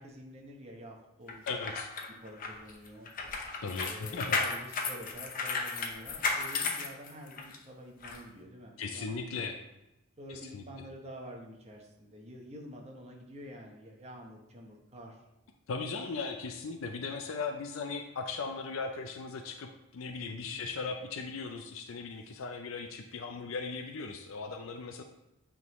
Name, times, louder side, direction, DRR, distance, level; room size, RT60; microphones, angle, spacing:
voice 1, 0.0-1.7 2.2-3.1 3.8-9.6 10.2-15.2 20.4-20.6, equal, 35° right, 0 dB, 1.0 m, -48 dB
sound 1, 1.3-7.6 8.0-8.2, left 4 dB, 45° left, 0.7 m, -34 dB
voice 2, 1.5-1.9 3.6-4.4 8.8-9.6 10.5-10.6 15.7-25.0, left 4 dB, 80° left, 5 dB, 0.5 m, -38 dB
8.3 x 3.7 x 3.1 m, 0.91 s
head